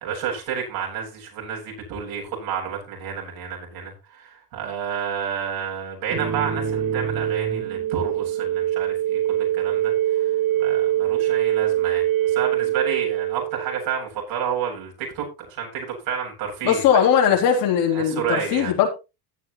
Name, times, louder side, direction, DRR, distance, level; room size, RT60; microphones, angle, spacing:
voice 1, 0.0-16.8 17.9-18.7, right 7 dB, 80° right, -1 dB, 8.0 m, -30 dB
sound 1, 6.1-14.0, right 12 dB, 45° right, 3.8 m, -23 dB
voice 2, 16.6-18.9, left 8 dB, 85° left, 1 dB, 3.7 m, -19 dB
15.0 x 9.7 x 3.2 m, 0.28 s
supercardioid pair, 75°, 46 cm